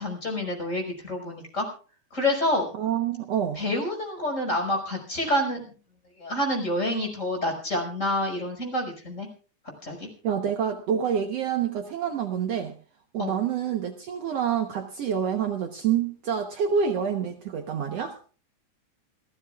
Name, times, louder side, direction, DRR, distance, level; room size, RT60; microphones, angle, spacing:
voice 1, 0.0-1.7 2.1-2.7 3.6-5.6 6.2-9.3 9.8-10.1 13.2-13.4, left 1 dB, 25° left, 2 dB, 5.9 m, -28 dB
voice 2, 2.8-3.6 10.2-12.7 13.1-18.2, right 8 dB, 65° right, 5 dB, 2.0 m, -27 dB
29.0 x 15.5 x 2.4 m, 0.39 s
omnidirectional pair, 3.4 m